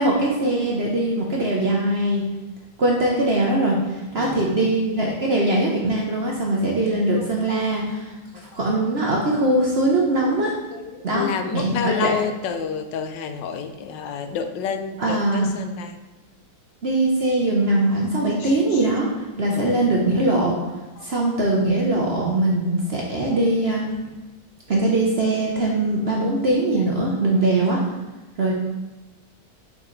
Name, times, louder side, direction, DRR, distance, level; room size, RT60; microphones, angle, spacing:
voice 1, 0.0-2.2 2.8-8.0 8.5-10.5 11.0-11.3 11.5-12.1 15.0-15.4 16.8-20.5 21.0-23.9 24.7-27.8 28.4-28.5, right 2 dB, 50° right, -2 dB, 0.8 m, -21 dB
voice 2, 4.2-4.5 6.5-6.6 7.0-7.3 8.3-8.6 10.2-10.3 10.7-16.0 18.4-18.8 19.5-19.8 21.0-21.1, left 7 dB, 85° left, 8 dB, 1.3 m, -30 dB
6.6 x 5.1 x 3.2 m, 1.1 s
omnidirectional pair, 1.9 m